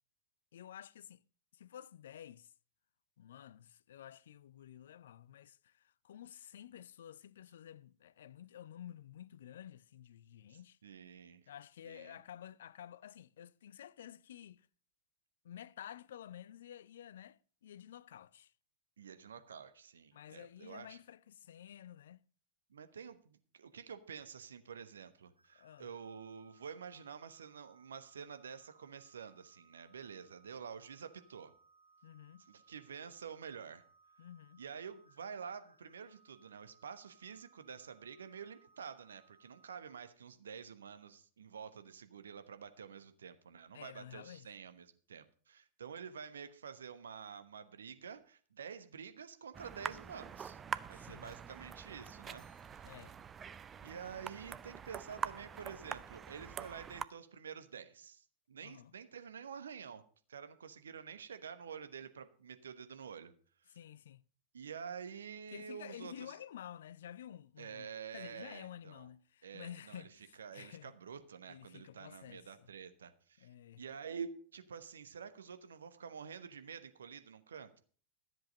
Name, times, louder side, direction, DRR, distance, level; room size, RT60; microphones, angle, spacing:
voice 1, 0.5-1.2 1.5-2.5 3.2-10.8 11.5-14.7 15.4-18.5 20.1-22.2 25.6-25.9 32.0-32.4 34.2-34.6 43.7-44.5 50.9-51.3 52.8-53.2 58.6-58.9 63.7-64.2 65.5-70.9 71.5-72.7 73.4-73.8, left 10 dB, 60° left, 0.4 m, -52 dB
voice 2, 10.5-11.5 11.8-12.2 19.0-21.0 22.7-31.5 32.5-33.8 34.6-50.6 50.9-52.5 53.8-60.0 60.3-63.3 63.7-63.8 64.5-66.3 67.6-69.1 69.4-70.1 70.4-73.5 73.8-77.8, right 6 dB, 70° right, 1.1 m, -49 dB
sound 1, 25.4-39.9, right 4 dB, 85° right, 5.2 m, -68 dB
sound 2, 49.5-57.1, right 7 dB, 20° right, 0.5 m, -45 dB
Bell, 52.3-54.6, left 5 dB, 20° left, 4.4 m, -76 dB
13.5 x 7.8 x 5.3 m
figure-of-eight pair, 90°, 0 cm